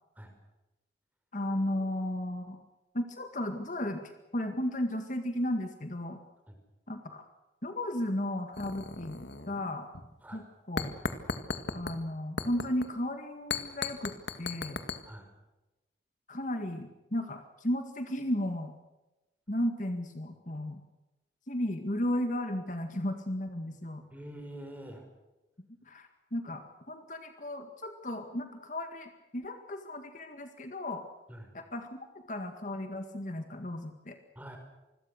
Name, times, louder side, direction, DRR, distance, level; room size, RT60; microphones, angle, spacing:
voice 1, 1.3-2.6 2.9-6.2 6.9-7.3 7.6-9.9 10.3-10.9 11.7-14.8 16.3-18.7 19.5-20.8 21.5-24.1 25.8-31.1 31.5-32.0 32.3-34.2, left 1 dB, 45° left, 6 dB, 1.9 m, -34 dB
sound 1, 8.5-9.7 9.9-10.1 10.8-12.0 12.4-12.8 13.5-15.0, left 4 dB, 70° left, 2.1 m, -36 dB
voice 2, 24.1-25.1 31.3-31.5 34.3-34.6, right 1 dB, 10° right, 4 dB, 5.3 m, -45 dB
27.0 x 21.5 x 6.5 m, 1.0 s
head